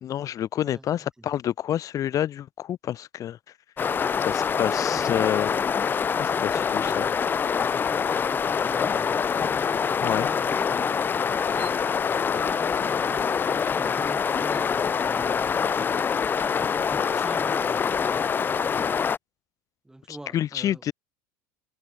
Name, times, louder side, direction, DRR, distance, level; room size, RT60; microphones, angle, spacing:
voice 1, 0.0-3.4 4.2-5.6 6.2-7.1 10.0-10.3 20.1-20.9, left 11 dB, 40° left, 0.9 m, -28 dB
voice 2, 0.5-1.3 4.5-5.3 6.7-7.2 7.9-9.2 9.8-11.0 12.2-15.5 16.2-18.3 19.8-20.8, right 1 dB, 5° right, 2.9 m, -43 dB
sound 1, 3.8-19.2, left 6 dB, 20° left, 0.5 m, -25 dB
sound 2, 11.3-16.9, right 27 dB, 70° right, 3.4 m, -53 dB
hypercardioid pair, 100°, 9 cm